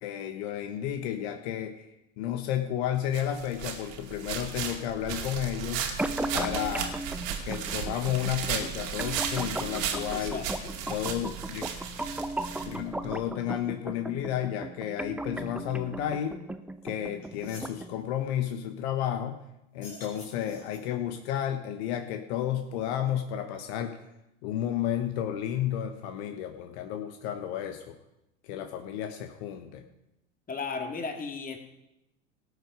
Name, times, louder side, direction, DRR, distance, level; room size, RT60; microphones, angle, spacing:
voice 1, 0.0-1.9 2.2-5.9 6.3-6.9 7.4-10.4 10.9-11.7 12.6-16.4 16.8-19.4 19.7-24.0 24.4-28.0 28.4-29.8, left 10 dB, 55° left, 6 dB, 1.3 m, -32 dB
sound 1, 3.1-13.1, right 7 dB, 55° right, 2.4 m, -35 dB
sound 2, 6.0-18.0, right 1 dB, 5° right, 0.6 m, -37 dB
voice 2, 10.1-10.7 30.5-31.6, left 4 dB, 20° left, 5 dB, 2.3 m, -35 dB
sound 3, 16.8-16.9 17.2-17.8 19.7-21.0, left 2 dB, 85° left, 4.6 m, -48 dB
18.0 x 8.3 x 5.1 m, 0.88 s
hypercardioid pair, 85°, 38 cm